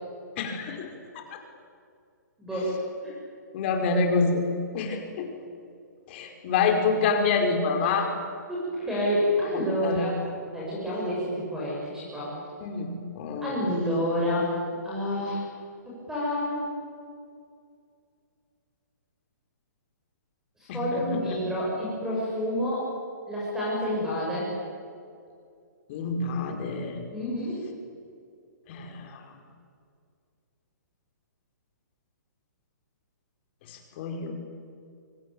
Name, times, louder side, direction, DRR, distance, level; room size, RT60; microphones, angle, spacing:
voice 1, 0.4-0.9 1.3-1.4 3.5-4.5 4.7-5.3 6.1-8.1 9.8-10.1 12.6-13.6 20.7-21.4 25.9-27.0 28.7-29.2 33.7-34.3, left 4 dB, 35° left, 4 dB, 5.1 m, -27 dB
voice 2, 2.4-2.7 3.0-3.1 8.5-10.1 10.5-12.3 13.4-14.5 14.8-15.4 15.9-16.7 20.7-22.9 23.3-24.5 27.1-27.6, equal, 5° right, -7 dB, 7.8 m, -28 dB
25.5 x 25.0 x 8.9 m, 2.3 s
hypercardioid pair, 155°, 10 cm